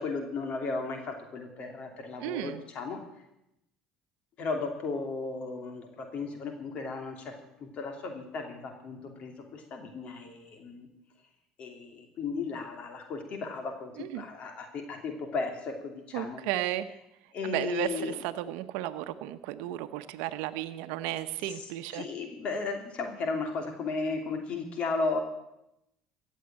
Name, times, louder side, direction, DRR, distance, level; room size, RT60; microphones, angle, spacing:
voice 1, 0.0-3.0 4.4-7.3 7.6-10.9 11.6-16.4 17.3-18.2 21.9-25.2, left 4 dB, 55° left, 4 dB, 2.8 m, -35 dB
voice 2, 2.2-2.6 14.0-14.3 16.1-16.9 17.4-22.1, right 13 dB, 80° right, 10 dB, 0.8 m, -34 dB
15.0 x 7.4 x 9.0 m, 0.85 s
supercardioid pair, 85°, 3 cm